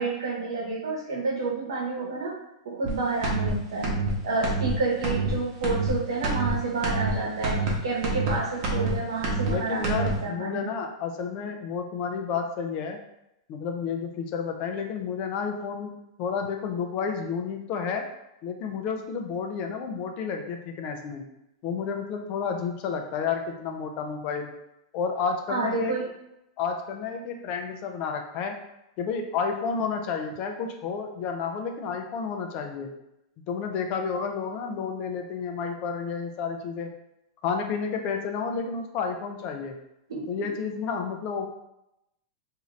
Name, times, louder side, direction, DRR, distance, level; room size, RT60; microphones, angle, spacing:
voice 1, 0.0-2.4 2.6-3.9 4.2-10.7 25.5-26.1 40.1-40.3, right 3 dB, 80° right, -2 dB, 0.9 m, -29 dB
sound 1, 2.8-2.9 3.2-3.5 3.8-4.1 4.4-4.7 5.0-5.3 5.6-5.9 6.2-6.5 6.8-7.1 7.4-7.7 8.0-8.3 8.6-8.9 9.2-9.5 9.8-10.1, right 3 dB, 55° right, 0.9 m, -27 dB
voice 2, 9.4-13.0 13.5-15.9 16.2-18.0 18.4-21.2 21.6-24.5 24.9-26.0 26.6-28.6 29.0-32.9 33.5-36.9 37.4-39.8 40.3-41.5, left 6 dB, 45° left, 4 dB, 0.5 m, -31 dB
2.7 x 2.4 x 3.1 m, 0.86 s
hypercardioid pair, 115°, 3 cm